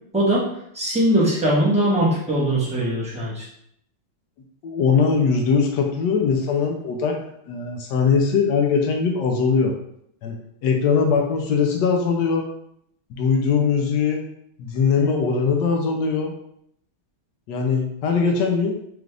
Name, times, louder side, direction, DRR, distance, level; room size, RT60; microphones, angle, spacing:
voice 1, 0.1-0.5 0.7-3.5, right 1 dB, 10° right, -8 dB, 0.4 m, -20 dB
voice 2, 4.6-7.2 7.5-9.8 10.2-10.4 10.6-12.4 13.1-14.2 14.6-16.3 17.5-18.8, left 5 dB, 75° left, 2 dB, 1.0 m, -21 dB
4.9 x 2.4 x 3.3 m, 0.73 s
omnidirectional pair, 2.3 m